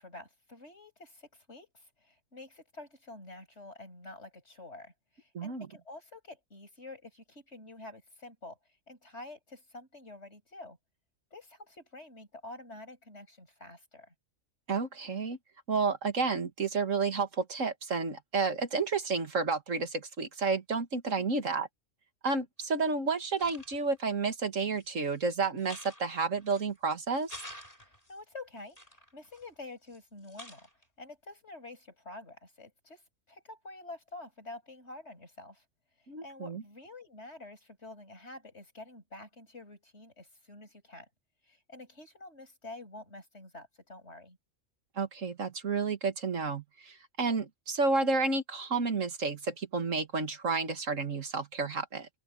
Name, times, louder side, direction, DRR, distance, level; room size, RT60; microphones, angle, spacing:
voice 1, 0.0-8.6 8.9-10.8 11.3-14.1 27.8-30.7 31.0-35.6 36.2-41.1 41.4-44.4, left 2 dB, 60° left, 7.5 m, -48 dB
voice 2, 5.3-5.7 14.7-15.4 15.7-21.7 22.2-27.3 36.1-36.6 45.0-52.1, right 4 dB, 80° right, 2.4 m, -31 dB
sound 1, 22.6-22.7 23.2-24.0 24.7-25.2 25.6-26.8 27.1-28.2 28.7-30.0 30.2-30.8, left 1 dB, 30° left, 6.7 m, -49 dB
open air
omnidirectional pair, 1.3 m